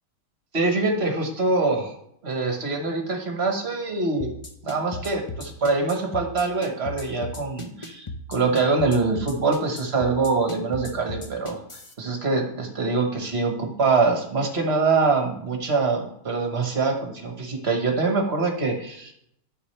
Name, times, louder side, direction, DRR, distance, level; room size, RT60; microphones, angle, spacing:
voice 1, 0.5-1.9 2.2-4.3 4.6-11.6 12.0-19.1, right 3 dB, 40° right, 2 dB, 1.5 m, -24 dB
sound 1, 4.2-11.9, left 2 dB, 45° left, 0.4 m, -36 dB
12.0 x 5.9 x 3.3 m, 0.72 s
omnidirectional pair, 1.9 m